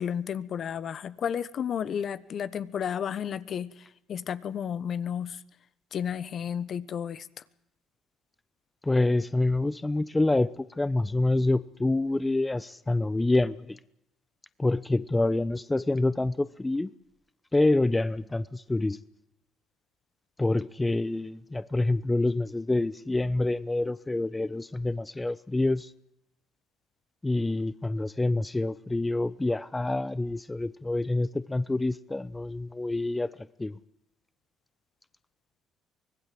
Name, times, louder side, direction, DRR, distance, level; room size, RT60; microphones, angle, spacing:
voice 1, 0.0-5.4 5.9-7.3, left 8 dB, 55° left, 1.2 m, -32 dB
voice 2, 8.8-13.8 14.6-16.9 17.5-19.0 20.4-25.9 27.2-33.3 33.6-33.8, left 2 dB, 15° left, 0.9 m, -27 dB
24.5 x 19.5 x 7.8 m
hypercardioid pair, 60°, 0 cm